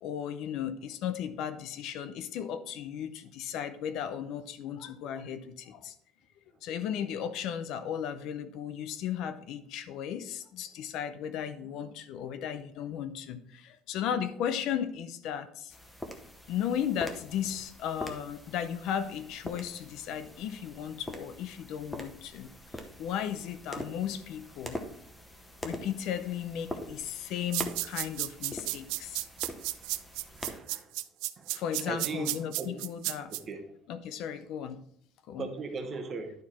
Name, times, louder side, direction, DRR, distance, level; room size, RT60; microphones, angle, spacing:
voice 1, 0.0-5.9 6.6-15.7 16.5-22.5 23.0-24.8 25.6-29.3 31.5-33.3 33.9-34.8 35.3-35.5, left 9 dB, 50° left, 11 dB, 0.5 m, -35 dB
sound 1, 15.7-30.6, left 1 dB, 5° left, 0.8 m, -44 dB
sound 2, 27.5-33.4, right 18 dB, 70° right, 0.4 m, -33 dB
voice 2, 30.3-30.9 31.4-32.8 33.3-33.6 35.4-36.3, right 4 dB, 25° right, 5 dB, 1.0 m, -39 dB
10.5 x 4.7 x 4.2 m, 0.68 s
cardioid pair, 175°, 0 cm